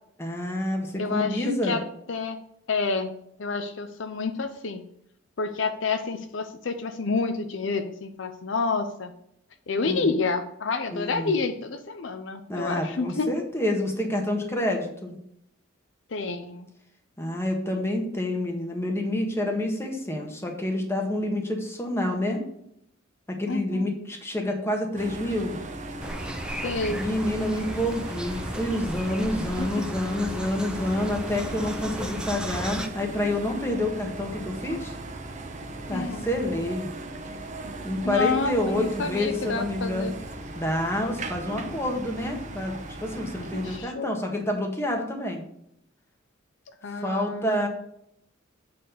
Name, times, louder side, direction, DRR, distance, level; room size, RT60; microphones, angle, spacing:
voice 1, 0.2-1.8 9.9-10.1 10.9-11.4 12.5-15.2 17.2-22.4 23.3-25.5 26.9-34.9 35.9-36.9 37.8-40.1 40.5-45.4 47.0-47.7, left 1 dB, 15° left, 1 dB, 1.5 m, -28 dB
voice 2, 1.0-1.8 2.1-2.4 2.7-3.1 3.4-4.8 5.4-9.1 9.7-13.3 16.1-16.7 23.5-23.9 26.5-27.0 29.4-29.9 35.9-36.3 38.0-40.2 43.5-44.2 46.8-47.6, left 4 dB, 65° left, 8 dB, 0.6 m, -29 dB
sound 1, 25.0-43.8, right 2 dB, 40° right, 0.9 m, -38 dB
sound 2, 26.0-32.9, equal, 5° right, 0.6 m, -35 dB
7.6 x 4.3 x 6.7 m, 0.73 s
head